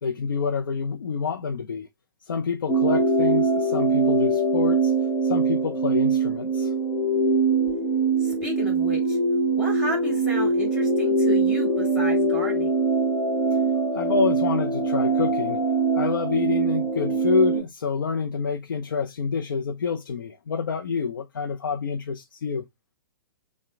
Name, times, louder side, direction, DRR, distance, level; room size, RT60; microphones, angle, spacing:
voice 1, 0.0-1.9 2.2-4.9 5.2-6.7 13.9-15.6 15.9-22.6, left 5 dB, 65° left, 0.5 m, -27 dB
sound 1, 2.7-17.6, right 3 dB, 15° left, 0.8 m, -23 dB
voice 2, 8.2-9.2 9.6-12.7, left 1 dB, 10° right, 2.5 m, -33 dB
5.5 x 2.2 x 2.3 m
figure-of-eight pair, 115°, 12 cm